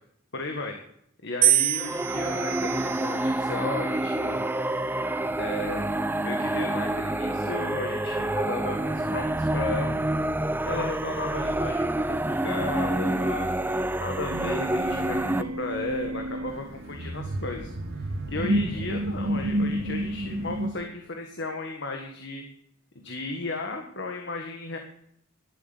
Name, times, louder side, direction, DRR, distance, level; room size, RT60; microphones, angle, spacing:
voice 1, 0.3-0.7 1.2-4.5 5.4-5.8 6.2-10.0 10.6-22.4 22.9-24.8, left 2 dB, 60° left, 3 dB, 1.7 m, -35 dB
sound 1, 1.4-3.6 4.4-5.0, right 13 dB, 65° right, 1.6 m, -27 dB
sound 2, 1.8-15.4, right 1 dB, 10° right, 0.5 m, -28 dB
sound 3, 14.3-20.7, right 1 dB, 85° right, 2.0 m, -30 dB
11.5 x 8.4 x 9.8 m, 0.70 s
head